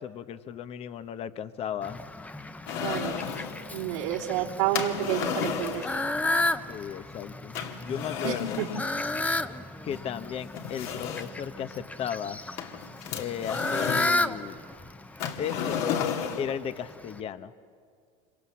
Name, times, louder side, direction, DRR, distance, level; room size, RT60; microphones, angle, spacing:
voice 1, 0.0-2.0 6.7-8.6 9.8-12.4 13.2-14.7 15.4-15.9 16.4-17.5, left 9 dB, 40° left, 11 dB, 1.0 m, -35 dB
Fowl, 1.8-17.2, left 2 dB, 10° left, 0.9 m, -33 dB
sound 1, 2.7-3.6 4.7-6.1 7.5-8.9 9.9-10.0 10.5-11.4 12.6-14.2 15.2-16.5, left 8 dB, 65° left, 2.4 m, -33 dB
voice 2, 2.8-3.2 3.7-5.9 8.2-8.7 9.1-9.6, right 11 dB, 80° right, -5 dB, 3.4 m, -30 dB
27.0 x 25.0 x 7.3 m, 2.1 s
supercardioid pair, 110°, 16 cm